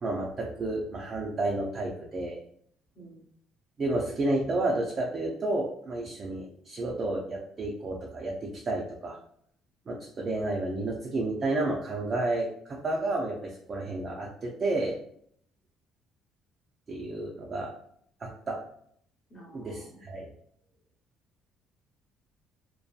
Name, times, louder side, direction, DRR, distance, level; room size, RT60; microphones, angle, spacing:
voice 1, 0.0-2.4 3.8-9.2 9.9-15.0 16.9-17.7 18.2-18.6 19.5-20.3, right 2 dB, 25° right, -2 dB, 0.3 m, -31 dB
voice 2, 19.3-20.0, right 1 dB, 20° left, -4 dB, 0.8 m, -50 dB
2.6 x 2.2 x 2.3 m, 0.66 s
cardioid pair, 180°, 0 cm